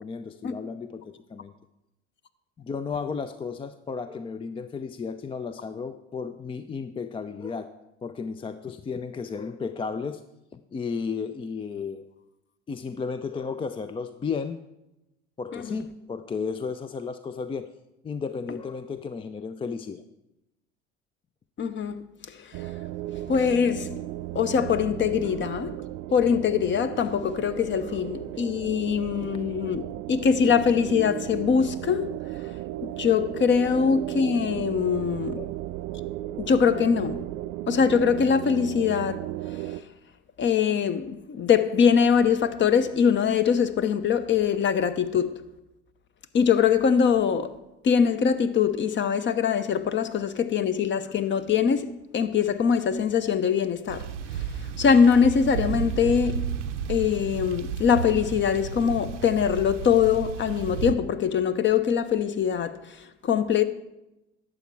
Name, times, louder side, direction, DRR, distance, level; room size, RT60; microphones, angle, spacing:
voice 1, 0.0-1.5 2.6-7.7 8.0-10.2 10.5-12.0 12.7-14.6 15.4-17.7 18.0-20.0 27.8-28.0 33.6-33.7 35.3-35.6, left 5 dB, 15° left, 0.4 m, -33 dB
voice 2, 15.5-15.8 21.6-22.5 23.3-24.0 24.3-25.8 26.1-32.1 33.0-35.4 36.4-37.2 37.7-39.2 39.5-39.8 40.4-45.4 46.3-47.5 47.8-54.1 54.3-54.4 54.8-56.5 56.9-63.6, left 7 dB, 30° left, 0.8 m, -23 dB
sound 1, 22.5-39.8, right 15 dB, 50° right, 0.5 m, -35 dB
sound 2, 53.9-60.9, right 8 dB, 85° right, 0.7 m, -33 dB
11.5 x 7.4 x 4.6 m
hypercardioid pair, 70°, 35 cm